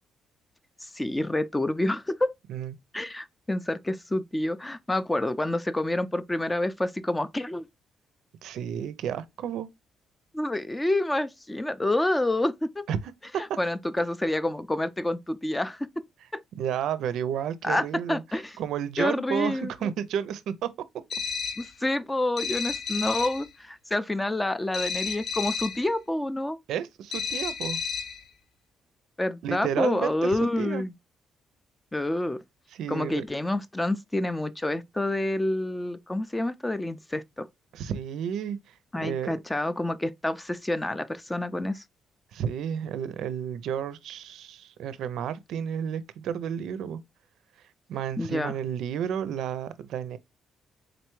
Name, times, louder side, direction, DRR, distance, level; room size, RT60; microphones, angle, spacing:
voice 1, 0.8-2.3 2.9-7.6 10.3-12.9 13.4-15.9 16.3-16.4 17.6-18.6 19.0-19.9 21.6-26.6 29.2-30.9 31.9-32.4 32.9-37.5 38.9-41.8 48.2-48.5, left 1 dB, 15° left, 0.4 m, -28 dB
voice 2, 8.4-9.7 12.9-13.0 16.6-18.2 18.6-20.7 26.7-27.8 29.4-30.8 32.7-33.2 37.7-38.8 39.0-39.3 42.3-47.0 47.9-50.2, right 9 dB, 80° right, 0.4 m, -31 dB
sound 1, 21.1-21.7 22.4-23.5 24.7-25.9 27.1-28.2, left 6 dB, 55° left, 0.6 m, -32 dB
3.9 x 3.3 x 3.0 m
cardioid pair, 90°, 0 cm